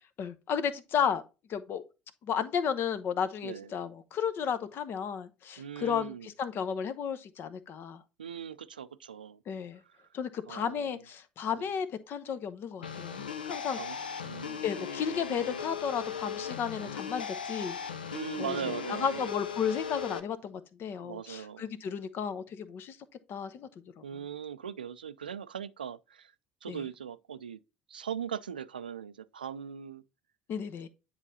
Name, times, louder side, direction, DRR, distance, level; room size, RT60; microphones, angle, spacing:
voice 1, 0.2-1.2 1.5-1.8 2.2-8.0 9.5-9.8 10.1-13.8 14.6-17.8 18.4-23.0 23.3-23.7 24.0-24.1 26.7-26.8 30.5-30.9, left 7 dB, 50° left, 0.8 m, -33 dB
voice 2, 5.6-6.3 8.2-9.4 9.8-9.9 10.5-11.0 11.5-11.7 13.7-14.9 18.1-19.4 21.0-21.7 24.0-26.3 26.6-27.6 27.9-30.0, right 8 dB, 90° right, 0.3 m, -40 dB
sound 1, 12.8-20.2, left 6 dB, 85° left, 0.5 m, -38 dB
9.9 x 3.9 x 2.7 m
hypercardioid pair, 60°, 5 cm